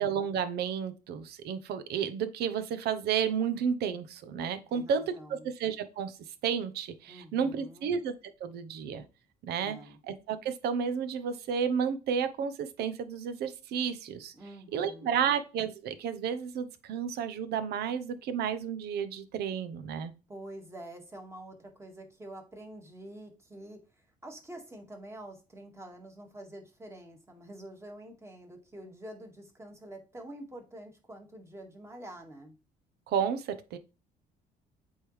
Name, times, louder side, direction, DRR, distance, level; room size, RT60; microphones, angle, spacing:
voice 1, 0.0-6.1 6.4-8.1 8.4-9.0 9.4-9.8 10.1-14.3 14.7-20.1 33.1-33.8, right 7 dB, 75° right, 12 dB, 0.9 m, -32 dB
voice 2, 4.7-5.5 7.1-8.0 9.6-10.0 14.3-15.4 20.3-32.5, right 1 dB, 15° right, 2 dB, 1.8 m, -47 dB
8.1 x 3.7 x 3.2 m, 0.32 s
cardioid pair, 110°, 17 cm